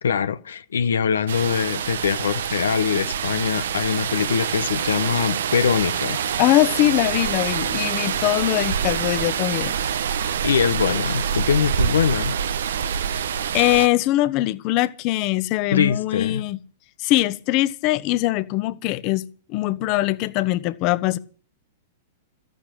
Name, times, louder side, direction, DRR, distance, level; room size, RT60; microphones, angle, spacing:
voice 1, 0.0-6.2 10.4-12.4 15.7-16.4, left 7 dB, 85° left, 1.0 m, -23 dB
sound 1, 1.3-13.9, right 8 dB, 75° right, 1.1 m, -26 dB
voice 2, 6.4-9.7 13.1-13.2 13.5-16.6 17.0-21.2, left 17 dB, 45° left, 1.2 m, -22 dB
13.5 x 12.0 x 7.6 m
hypercardioid pair, 115°, 0 cm